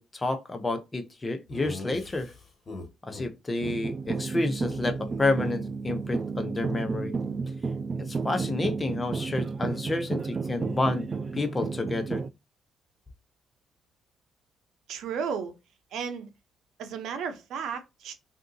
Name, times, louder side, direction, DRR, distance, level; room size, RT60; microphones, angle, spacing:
voice 1, 0.0-2.3 3.1-7.1 8.0-11.1 11.3-12.2, left 2 dB, 25° left, 0.8 m, -29 dB
Laughter, 1.5-3.3 3.6-3.8 4.0-4.2 4.5-6.1, left 2 dB, 40° left, 1.3 m, -43 dB
sound 1, 3.6-12.3, right 4 dB, 35° right, 0.3 m, -32 dB
voice 2, 14.9-15.5 15.9-16.3 16.8-18.1, right 6 dB, 80° right, 0.6 m, -33 dB
3.6 x 2.6 x 2.6 m
cardioid pair, 90°, 0 cm